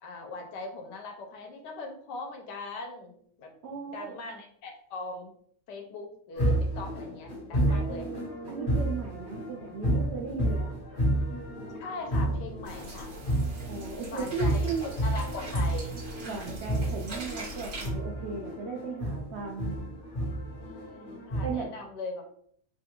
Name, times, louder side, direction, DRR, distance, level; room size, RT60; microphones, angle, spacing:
voice 1, 0.0-5.3 5.7-8.1 11.8-13.1 14.1-16.0 20.6-22.2, left 3 dB, 85° left, 3 dB, 1.3 m, -40 dB
voice 2, 3.6-4.1 7.7-10.7 13.7-14.9 16.2-19.8 21.4-21.7, right 5 dB, 85° right, -1 dB, 0.5 m, -36 dB
sound 1, 6.4-21.5, right 1 dB, 35° left, 1.2 m, -31 dB
sound 2, 12.6-17.9, right 1 dB, 50° right, 1.6 m, -42 dB
3.3 x 2.4 x 2.9 m, 0.63 s
omnidirectional pair, 1.8 m